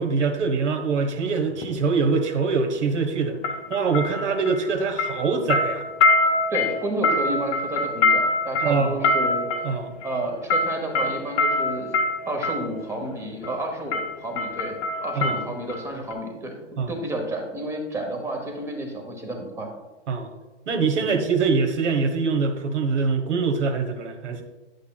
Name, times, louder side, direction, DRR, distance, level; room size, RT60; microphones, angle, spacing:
voice 1, 0.0-3.4 3.7-5.8 8.6-9.1 9.6-9.9 15.2-15.4 16.8-16.9 20.1-20.3 20.7-24.4, right 4 dB, 70° right, 6 dB, 1.4 m, -24 dB
sound 1, 1.5-1.7 3.4-4.7 5.0-12.7 13.4-13.6 13.9-15.8 16.1-16.2, left 3 dB, 15° left, 0.5 m, -24 dB
voice 2, 6.5-9.5 10.0-11.9 12.3-14.8 15.0-19.7 21.0-21.1, right 1 dB, 10° right, 2 dB, 0.9 m, -31 dB
9.9 x 8.1 x 2.3 m, 1.1 s
hypercardioid pair, 145°, 36 cm